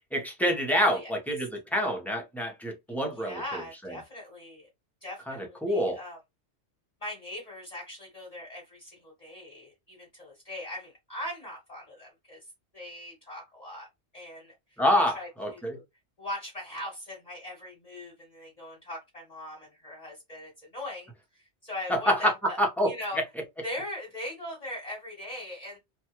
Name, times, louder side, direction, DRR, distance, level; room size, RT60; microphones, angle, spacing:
voice 1, 0.1-3.4 3.8-3.9 5.3-6.0 14.8-15.8 21.9-22.3 22.6-22.9, equal, ahead, 0.5 m, -27 dB
voice 2, 0.8-1.1 3.2-4.7 5.0-6.2 7.0-12.5 12.7-13.9 14.1-14.8 15.1-15.8 16.2-22.6 22.9-23.2 23.6-25.8, left 1 dB, 35° left, 1.1 m, -40 dB
3.0 x 2.3 x 2.8 m
omnidirectional pair, 1.2 m